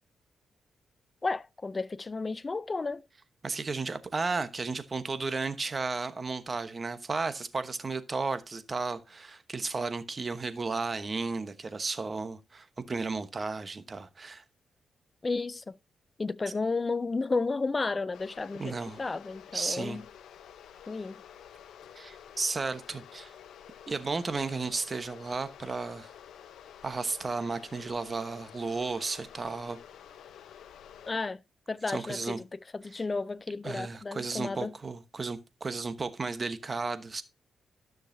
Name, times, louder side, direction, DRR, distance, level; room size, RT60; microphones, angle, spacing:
voice 1, 1.2-3.0 15.2-15.7 16.2-20.0 20.9-21.2 31.1-31.4 31.7-32.4 32.7-34.7, left 3 dB, 30° left, 0.4 m, -32 dB
voice 2, 3.4-14.4 18.6-19.0 19.5-20.0 21.9-23.3 23.9-26.1 26.8-29.8 31.9-32.4 32.9-33.0 33.6-37.2, right 4 dB, 35° right, 1.0 m, -34 dB
sound 1, 18.1-31.1, left 9 dB, 85° left, 0.7 m, -50 dB
13.0 x 6.4 x 2.6 m
cardioid pair, 85°, 0 cm